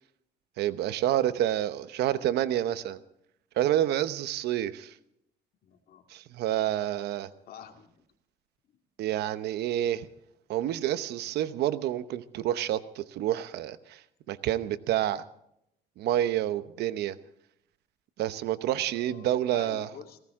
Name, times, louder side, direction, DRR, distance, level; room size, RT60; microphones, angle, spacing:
voice 1, 0.6-3.0 3.6-4.9 6.1-7.3 9.0-10.1 10.5-14.0 14.3-15.2 16.0-17.2 18.2-19.9, right 12 dB, 75° right, 13 dB, 1.0 m, -28 dB
voice 2, 5.6-6.1 7.5-8.0 8.6-8.8 18.9-20.2, left 8 dB, 60° left, 5 dB, 2.2 m, -48 dB
21.0 x 17.5 x 3.7 m, 0.76 s
cardioid pair, 110°, 17 cm